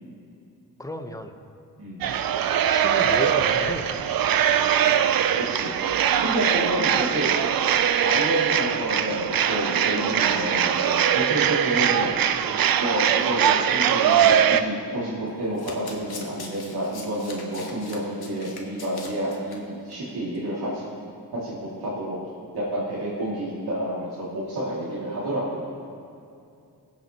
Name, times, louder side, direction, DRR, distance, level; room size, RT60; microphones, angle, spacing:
voice 1, 0.8-1.3 2.7-4.5 4.8-5.2 6.8-7.2, left 1 dB, 10° left, 5 dB, 0.9 m, -35 dB
sound 1, 2.0-14.6, right 9 dB, 65° right, 0.5 m, -22 dB
voice 2, 6.2-7.3 8.0-12.1 12.8-20.8 21.3-22.2 22.5-25.6, right 1 dB, 85° right, -9 dB, 2.5 m, -29 dB
Domestic sounds home sounds, 15.3-19.6 19.9-20.1 20.3-20.4, left 4 dB, 70° left, 1.5 m, -41 dB
22.0 x 7.6 x 3.0 m, 2.6 s
wide cardioid pair, 85°, 39 cm